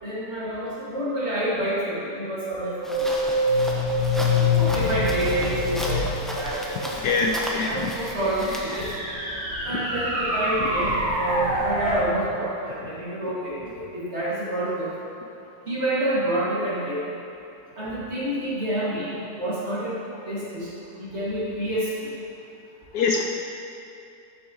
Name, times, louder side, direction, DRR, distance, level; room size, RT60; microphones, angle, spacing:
voice 1, 0.0-3.2 4.4-8.9 9.6-14.9 15.7-17.1 17.8-20.0 20.2-20.7 21.0-21.9, right 1 dB, 35° right, -9 dB, 2.4 m, -28 dB
sound 1, 2.6-7.2, left 3 dB, 45° left, 2.5 m, -24 dB
sound 2, 2.8-9.0, equal, ahead, 0.4 m, -34 dB
voice 2, 7.0-7.9 10.6-10.7 22.9-23.2, left 4 dB, 70° left, 1 dB, 1.0 m, -24 dB
sound 3, 7.8-12.1, right 1 dB, 85° right, 2.7 m, -28 dB
12.5 x 7.1 x 3.0 m, 2.7 s
omnidirectional pair, 1.9 m